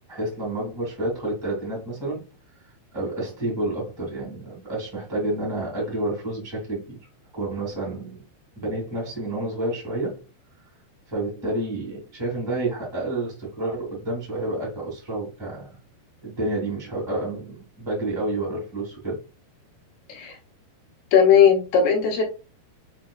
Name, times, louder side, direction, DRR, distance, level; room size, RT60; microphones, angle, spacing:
voice 1, 0.1-2.2 2.9-7.0 7.3-8.2 8.5-10.2 11.1-15.7 16.2-19.2, right 2 dB, 40° right, 0.3 m, -29 dB
voice 2, 21.1-22.2, left 7 dB, 75° left, 2.9 m, -17 dB
7.4 x 2.7 x 2.3 m
omnidirectional pair, 4.8 m